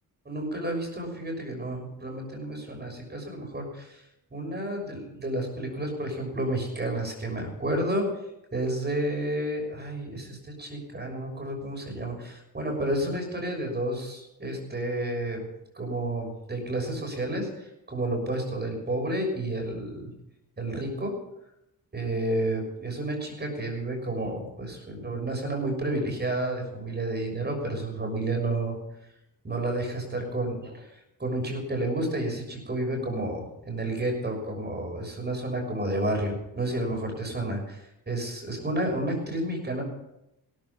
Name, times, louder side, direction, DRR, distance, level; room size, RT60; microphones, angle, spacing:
voice 1, 0.2-4.0 4.3-8.1 8.5-15.5 15.7-20.1 20.6-21.1 21.9-28.8 29.4-30.9 31.2-39.8, right 1 dB, 25° right, 2 dB, 6.3 m, -31 dB
17.5 x 13.5 x 5.6 m, 0.85 s
wide cardioid pair, 115°, 38 cm